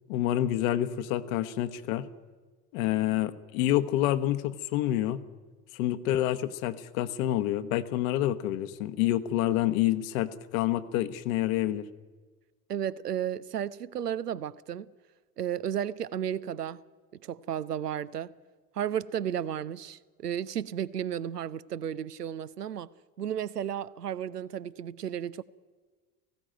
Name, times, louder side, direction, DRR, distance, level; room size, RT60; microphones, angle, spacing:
voice 1, 0.1-2.1 2.7-5.2 5.7-11.8, left 13 dB, 60° left, 1.1 m, -28 dB
voice 2, 12.7-14.9 15.4-16.8 17.2-18.3 18.7-22.9 23.2-25.4, right 9 dB, 85° right, 0.6 m, -33 dB
18.5 x 16.0 x 9.1 m
figure-of-eight pair, 60°, 46 cm